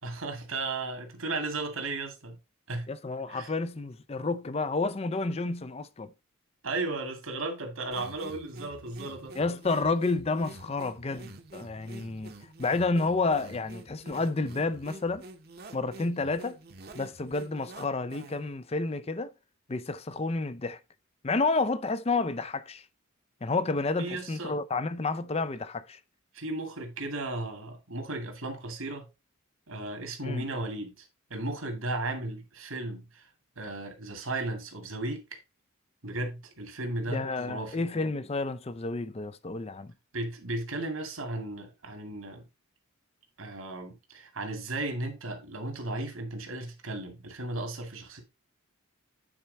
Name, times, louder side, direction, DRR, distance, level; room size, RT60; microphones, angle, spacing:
voice 1, 0.0-2.4 2.7-2.9 3.3-3.5 6.6-9.4 24.0-24.6 26.3-29.1 29.7-33.3 33.6-35.4 36.0-37.8 40.1-42.4 43.4-48.2, right 2 dB, 75° right, 2.3 m, -35 dB
voice 2, 2.9-6.1 9.4-12.3 12.6-15.2 15.7-16.6 16.9-19.3 19.7-20.8 21.2-22.8 23.4-26.0 30.2-30.4 37.1-39.9, left 3 dB, 30° left, 0.5 m, -30 dB
sound 1, 7.9-18.5, right 2 dB, 50° right, 1.1 m, -47 dB
8.9 x 4.5 x 4.0 m
head